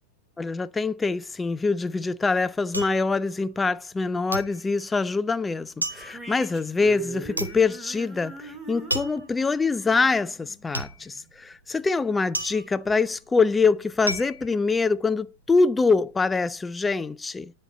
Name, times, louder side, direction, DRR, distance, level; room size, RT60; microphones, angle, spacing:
voice 1, 0.4-17.5, left 4 dB, 10° left, 0.4 m, -24 dB
sound 1, 1.6-4.0 4.3-15.4 15.8-16.3, right 1 dB, 85° right, 0.9 m, -35 dB
sound 2, 5.9-11.3, right 4 dB, 15° right, 2.2 m, -41 dB
10.0 x 4.4 x 4.0 m
figure-of-eight pair, 90°, 0 cm